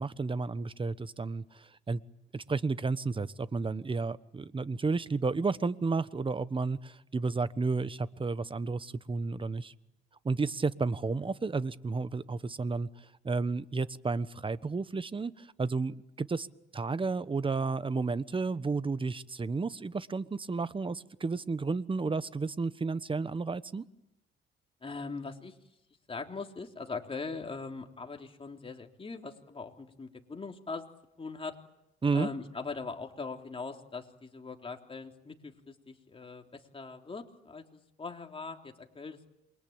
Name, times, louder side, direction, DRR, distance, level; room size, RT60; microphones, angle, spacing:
voice 1, 0.0-2.0 2.3-9.7 10.2-16.5 16.7-23.8 32.0-32.3, right 4 dB, 25° right, 1.2 m, -32 dB
voice 2, 24.8-25.6 26.1-30.9 31.2-31.6 32.1-39.3, left 4 dB, 30° left, 3.5 m, -41 dB
28.0 x 23.5 x 8.9 m
cardioid pair, 90°, 20 cm